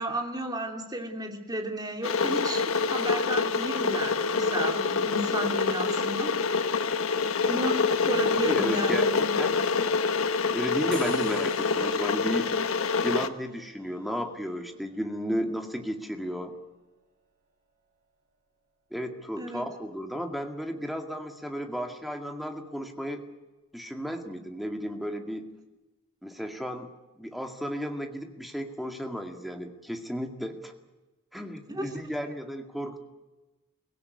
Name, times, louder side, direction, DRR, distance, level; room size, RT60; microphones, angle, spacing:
voice 1, 0.0-6.6 7.4-9.5 19.4-19.7 31.7-31.9, right 1 dB, 20° right, 3 dB, 2.8 m, -33 dB
Water / Boiling, 2.0-13.3, left 4 dB, 70° left, 1.2 m, -26 dB
voice 2, 8.5-9.6 10.5-12.5 13.0-16.6 18.9-23.2 23.7-25.5 26.2-26.9 27.2-30.7 31.3-33.0, equal, ahead, 5 dB, 2.1 m, -33 dB
sound 1, 10.9-18.8, right 4 dB, 40° right, 6.5 m, -52 dB
24.0 x 16.5 x 9.7 m, 1.1 s
head